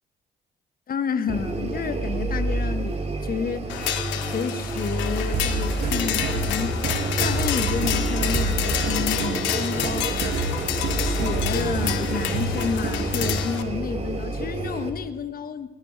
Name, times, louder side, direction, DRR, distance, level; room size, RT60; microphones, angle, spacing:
voice 1, 0.9-3.8 4.3-6.7 7.2-10.5 11.0-15.7, left 6 dB, 50° left, 11 dB, 1.3 m, -30 dB
sound 1, 1.3-14.9, right 2 dB, 35° right, 2.7 m, -28 dB
sound 2, 3.7-13.6, left 11 dB, 80° left, 1.2 m, -29 dB
sound 3, 5.3-13.5, right 4 dB, 75° right, 2.1 m, -30 dB
18.5 x 15.5 x 4.7 m, 1.3 s
supercardioid pair, 60°, 19 cm